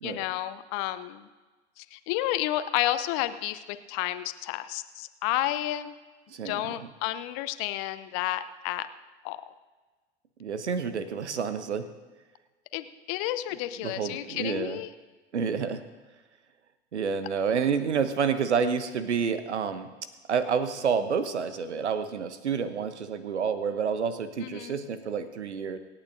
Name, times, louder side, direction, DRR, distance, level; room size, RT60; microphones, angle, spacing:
voice 1, 0.0-1.3 1.8-5.9 6.4-8.9 9.2-9.4 12.7-14.9 24.4-24.9, left 14 dB, 45° left, 12 dB, 0.7 m, -31 dB
voice 2, 6.3-6.8 10.4-11.9 13.8-14.8 15.3-15.8 16.9-19.9 20.3-25.8, right 6 dB, 75° right, 12 dB, 1.0 m, -29 dB
26.5 x 8.9 x 2.7 m, 1.3 s
figure-of-eight pair, 75°, 34 cm